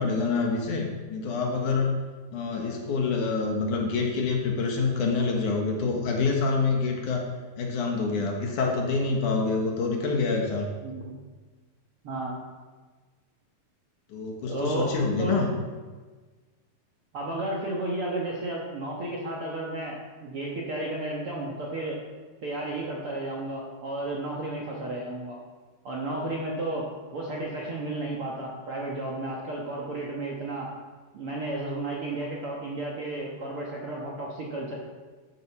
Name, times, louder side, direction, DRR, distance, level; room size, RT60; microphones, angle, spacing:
voice 1, 0.0-1.9 2.3-7.2 7.6-10.7 14.1-15.5, left 4 dB, 65° left, 0 dB, 2.6 m, -26 dB
voice 2, 10.8-11.1 12.0-12.3 14.5-15.4 17.1-22.0 22.4-25.4 25.8-30.7 31.1-34.8, right 2 dB, 55° right, -3 dB, 1.7 m, -33 dB
12.0 x 7.8 x 6.0 m, 1.4 s
omnidirectional pair, 4.2 m